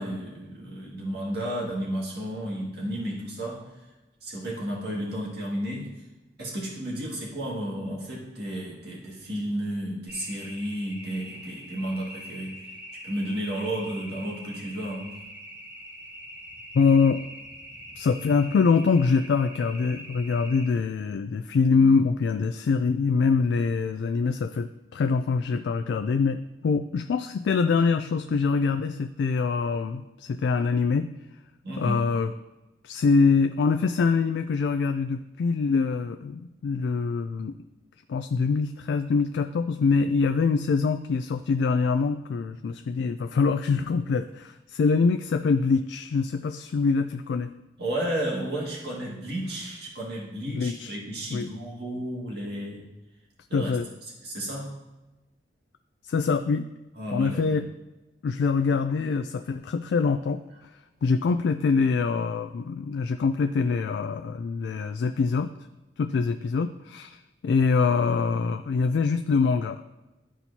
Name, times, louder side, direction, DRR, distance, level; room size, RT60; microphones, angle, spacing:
voice 1, 0.0-3.6 4.2-5.9 6.4-12.6 13.0-15.2 31.6-32.0 47.8-52.9 53.5-53.7 54.0-54.7 57.0-57.5, right 1 dB, 65° right, -4 dB, 2.0 m, -32 dB
sound 1, 10.1-20.7, equal, 10° right, 1.1 m, -43 dB
voice 2, 16.7-17.2 18.0-31.1 31.8-32.3 32.8-37.5 38.1-47.5 50.5-51.0 51.3-51.5 53.5-53.9 56.1-56.7 57.1-57.7 58.2-60.4 61.0-65.5 66.0-67.2 67.4-69.9, left 4 dB, 75° left, 9 dB, 0.3 m, -24 dB
12.5 x 4.4 x 2.8 m, 1.1 s
head